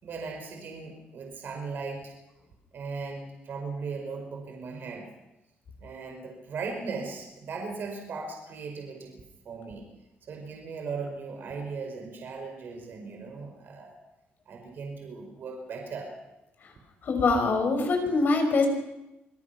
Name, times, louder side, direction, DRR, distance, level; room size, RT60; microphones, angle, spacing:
voice 1, 0.0-2.1 2.7-5.1 5.8-9.8 10.3-14.0 14.5-16.1, right 4 dB, 60° right, 2 dB, 5.0 m, -38 dB
voice 2, 17.0-18.7, left 3 dB, 55° left, 4 dB, 5.5 m, -23 dB
25.5 x 18.5 x 6.0 m, 0.93 s
cardioid pair, 95°, 4 cm